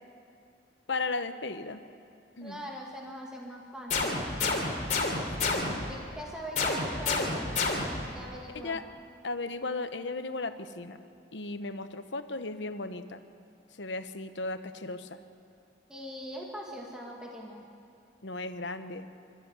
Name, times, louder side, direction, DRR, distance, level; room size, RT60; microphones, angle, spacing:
voice 1, 0.9-1.8 2.4-2.6 5.4-5.9 8.6-8.8 9.2-11.0 11.3-13.2 13.8-15.2 18.2-19.1, left 3 dB, 80° left, 10 dB, 1.0 m, -36 dB
voice 2, 2.4-4.6 5.9-7.5 8.1-8.8 15.9-17.6, equal, 5° right, -2 dB, 2.1 m, -42 dB
sound 1, 3.9-6.0 6.6-8.1, left 3 dB, 40° left, 3.0 m, -29 dB
26.0 x 13.5 x 8.2 m, 2.5 s
head